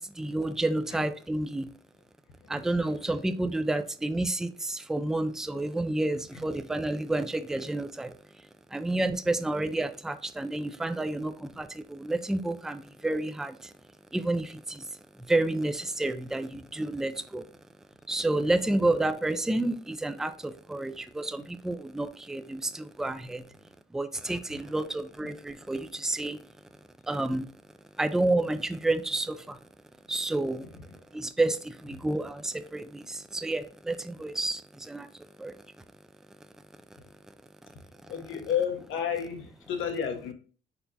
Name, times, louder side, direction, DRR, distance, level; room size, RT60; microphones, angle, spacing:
voice 1, 0.0-1.7 2.5-8.1 8.7-13.7 14.1-14.9 15.1-17.5 18.1-23.4 23.9-26.4 27.0-27.5 28.0-29.6 30.1-30.6 31.1-35.1 35.4-35.5, right 2 dB, ahead, 0.3 m, -30 dB
voice 2, 2.4-2.9 6.3-6.4 24.5-24.7 30.7-31.2 32.0-32.1 37.0-37.1 37.7-40.3, left 8 dB, 85° left, 0.9 m, -33 dB
4.4 x 4.1 x 2.7 m
cardioid pair, 90°, 20 cm